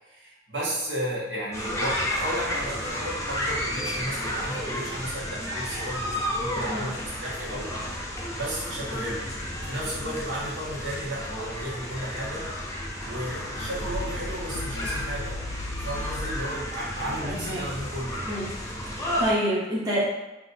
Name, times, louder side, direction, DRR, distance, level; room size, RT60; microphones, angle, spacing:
voice 1, 0.1-7.7 8.3-9.2 9.6-12.5 13.0-15.4 15.8-18.3, equal, 70° right, -7 dB, 1.5 m, -33 dB
sound 1, 1.5-19.3, equal, 15° left, 0.7 m, -32 dB
sound 2, 13.6-16.6, left 1 dB, 90° left, 0.4 m, -35 dB
voice 2, 17.2-17.6 18.3-18.4 18.9-20.0, right 1 dB, 20° right, -8 dB, 0.9 m, -27 dB
6.0 x 2.5 x 2.7 m, 1.0 s
head